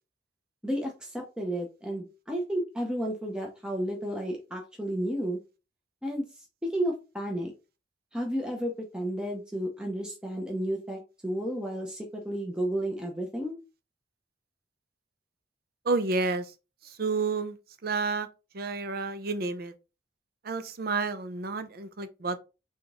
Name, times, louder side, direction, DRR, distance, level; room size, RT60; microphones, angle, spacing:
voice 1, 0.6-5.4 6.0-6.3 6.6-7.5 8.1-13.6, equal, 5° right, 0.7 m, -32 dB
voice 2, 15.8-16.5 16.8-17.6 17.8-18.3 18.5-19.7 20.4-22.4, right 3 dB, 55° right, 0.6 m, -30 dB
3.7 x 3.4 x 3.7 m
head